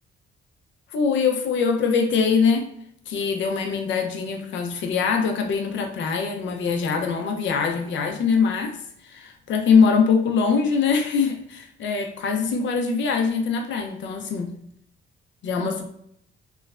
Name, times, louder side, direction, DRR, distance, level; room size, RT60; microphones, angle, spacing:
voice 1, 0.9-2.7 3.1-8.8 9.0-14.5 15.4-15.8, left 5 dB, 70° left, 4 dB, 0.5 m, -23 dB
3.1 x 2.1 x 2.4 m, 0.71 s
cardioid pair, 90°, 20 cm